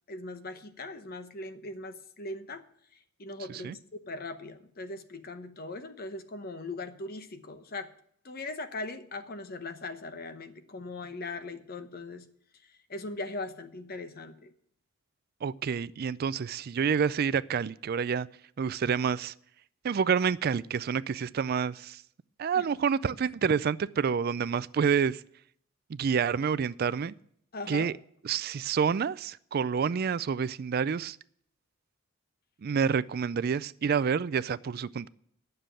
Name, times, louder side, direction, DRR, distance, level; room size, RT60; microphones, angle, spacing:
voice 1, 0.1-2.6 3.2-3.8 4.0-7.9 8.2-12.3 12.9-14.5 22.5-22.7 27.5-27.9, left 2 dB, 45° left, 0.9 m, -39 dB
voice 2, 15.4-18.3 18.6-19.3 19.8-22.0 22.4-25.2 25.9-27.1 27.7-27.9 28.2-31.2 32.6-35.1, right 6 dB, 45° right, 0.3 m, -28 dB
9.6 x 6.8 x 8.9 m
head